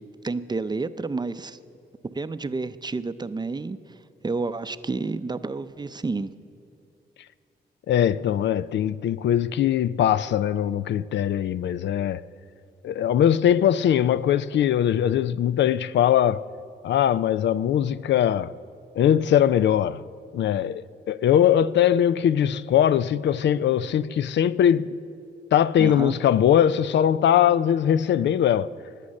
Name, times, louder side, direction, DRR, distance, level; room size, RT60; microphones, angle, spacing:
voice 1, 0.2-1.6 2.1-3.8 4.2-6.3 25.8-26.1, right 3 dB, 25° right, 0.5 m, -30 dB
voice 2, 7.9-12.2 12.8-16.4 16.8-18.5 19.0-20.0 20.3-24.9 25.5-28.7, left 10 dB, 80° left, 0.4 m, -21 dB
20.0 x 8.5 x 6.5 m
cardioid pair, 90°, 18 cm